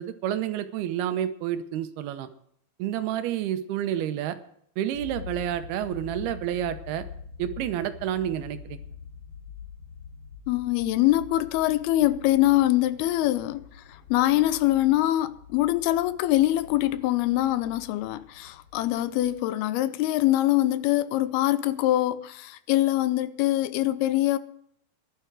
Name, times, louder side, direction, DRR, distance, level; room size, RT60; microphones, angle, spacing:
voice 1, 0.0-2.3 2.8-4.4 4.8-7.0 7.4-8.8, right 11 dB, 85° right, 2.9 m, -29 dB
sound 1, 4.9-19.4, left 7 dB, 45° left, 1.6 m, -45 dB
voice 2, 10.5-13.6 14.1-24.4, left 15 dB, 90° left, 2.6 m, -23 dB
14.0 x 11.5 x 4.8 m
omnidirectional pair, 4.4 m